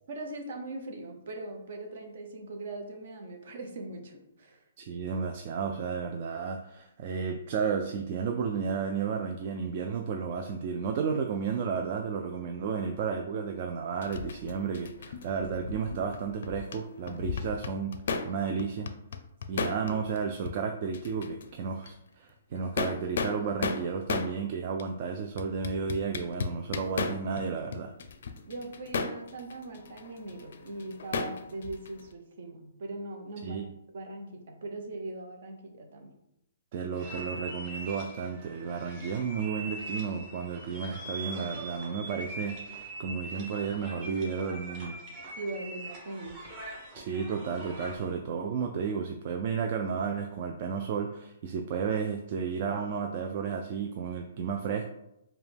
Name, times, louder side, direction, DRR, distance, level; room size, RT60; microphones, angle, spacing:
voice 1, 0.1-4.6 19.5-19.7 28.5-33.6 33.9-36.1 45.4-46.4, right 2 dB, 55° right, 3 dB, 0.8 m, -40 dB
voice 2, 4.8-18.9 19.5-27.9 33.4-33.7 36.7-45.0 46.9-54.8, right 6 dB, 35° right, 4 dB, 0.3 m, -32 dB
sound 1, 14.0-16.8 17.1-18.3 18.6-20.2 20.4-20.5 20.9-21.5 21.8-21.9 22.5-24.3 24.8-24.9 25.4-27.4 27.7-32.1, left 5 dB, 60° left, 0.4 m, -34 dB
sound 2, 36.9-48.1, right 1 dB, 20° right, 1.1 m, -42 dB
4.7 x 2.2 x 3.4 m, 0.84 s
hypercardioid pair, 165°, 0 cm